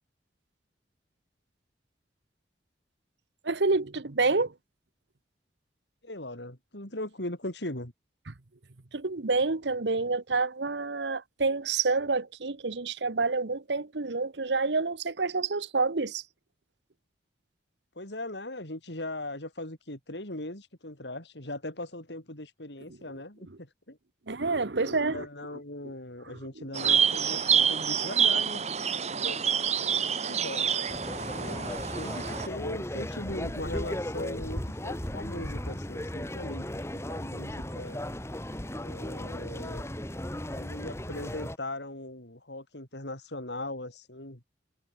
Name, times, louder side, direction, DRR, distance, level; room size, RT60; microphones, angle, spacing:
voice 1, 3.4-4.5 8.3-8.4 8.9-16.2 24.3-25.2 26.6-26.9, right 3 dB, 80° right, 1.2 m, -28 dB
voice 2, 6.0-7.9 18.0-24.0 24.8-28.7 29.2-29.4 30.1-30.8 31.2-38.0 38.8-39.8 40.5-44.4, left 1 dB, 75° left, 5.7 m, -39 dB
sound 1, 26.7-32.5, right 7 dB, 40° right, 1.3 m, -27 dB
sound 2, 30.9-41.6, left 1 dB, 15° left, 2.1 m, -36 dB
head